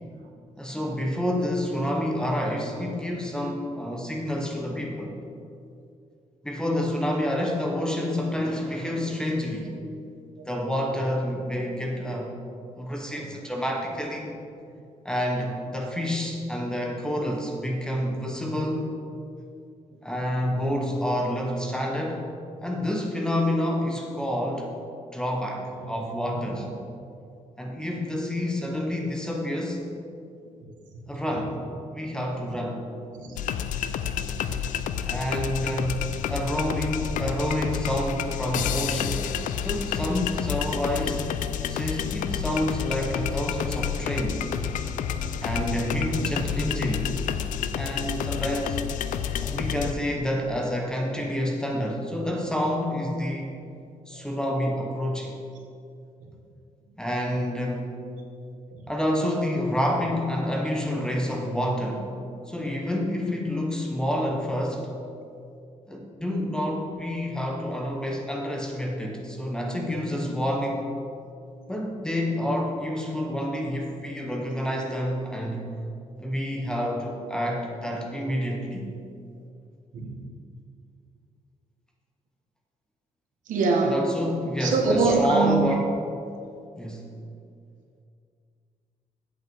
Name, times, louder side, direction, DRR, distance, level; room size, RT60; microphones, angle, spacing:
voice 1, 0.6-5.1 6.4-9.7 10.4-12.3 12.8-14.3 15.0-18.9 20.0-22.3 22.6-24.7 25.1-26.7 27.6-29.8 31.1-31.6 31.9-32.8 35.0-39.3 39.6-41.3 41.7-44.5 45.2-47.1 47.7-48.8 49.4-53.5 54.1-55.4 57.0-57.9 58.9-62.1 62.5-64.9 65.9-70.9 71.7-75.7 76.2-78.9 83.8-85.9 86.8-87.1, equal, 5° left, 0 dB, 1.0 m, -28 dB
sound 1, 33.4-49.9, left 8 dB, 85° left, 0.4 m, -29 dB
voice 2, 83.5-84.0 84.6-85.6, right 3 dB, 80° right, 1 dB, 1.4 m, -22 dB
8.2 x 7.7 x 4.6 m, 2.5 s
cardioid pair, 140°, 13 cm